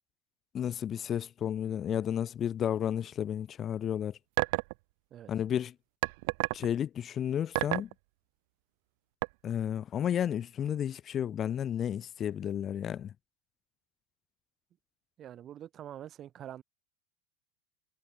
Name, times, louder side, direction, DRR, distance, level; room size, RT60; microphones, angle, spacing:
voice 1, 0.5-4.2 5.3-5.7 6.5-7.9 9.4-13.1, left 9 dB, 35° left, 0.4 m, -32 dB
sound 1, 4.4-4.7 6.0-6.7 7.6-7.9 9.2-9.3, right 28 dB, 65° right, 0.3 m, -29 dB
voice 2, 15.2-16.6, right 11 dB, 35° right, 1.5 m, -45 dB
hypercardioid pair, 110°, 0 cm